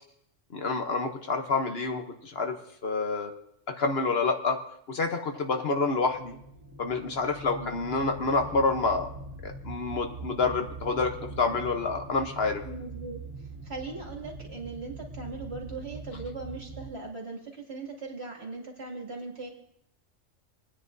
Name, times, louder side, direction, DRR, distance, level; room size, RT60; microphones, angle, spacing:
voice 1, 0.5-2.6 2.8-3.3 3.8-4.6 4.9-6.4 6.8-9.1 9.4-12.6, left 3 dB, 60° left, 5 dB, 1.2 m, -28 dB
sound 1, 5.8-16.9, right 2 dB, 20° right, 1.8 m, -42 dB
voice 2, 7.5-7.9 12.6-13.2 13.6-19.5, right 3 dB, 60° right, -1 dB, 2.8 m, -39 dB
29.0 x 9.9 x 2.7 m, 0.75 s
omnidirectional pair, 1.2 m